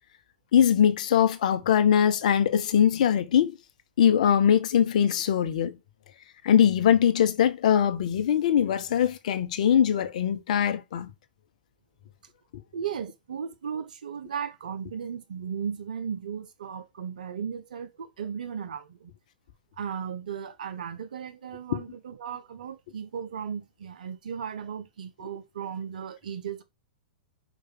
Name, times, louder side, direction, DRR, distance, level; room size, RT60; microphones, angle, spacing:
voice 1, 0.5-3.6 4.0-5.8 6.4-11.1 12.5-12.6 21.7-21.8, left 9 dB, 55° left, 1.1 m, -22 dB
voice 2, 12.7-19.1 19.8-26.6, right 7 dB, 60° right, 1.2 m, -36 dB
5.1 x 5.0 x 6.0 m
figure-of-eight pair, 100°, 5 cm